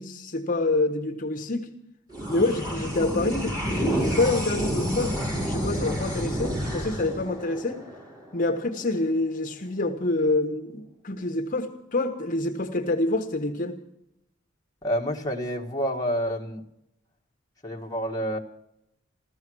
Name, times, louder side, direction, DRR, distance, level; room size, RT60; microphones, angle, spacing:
voice 1, 0.0-1.7 2.3-5.2 5.4-7.8 8.3-13.8, left 2 dB, 40° left, 1.3 m, -27 dB
sound 1, 2.1-8.8, equal, 20° right, 6.6 m, -29 dB
voice 2, 14.8-16.6 17.6-18.4, equal, 20° left, 1.6 m, -28 dB
16.0 x 14.0 x 6.2 m
head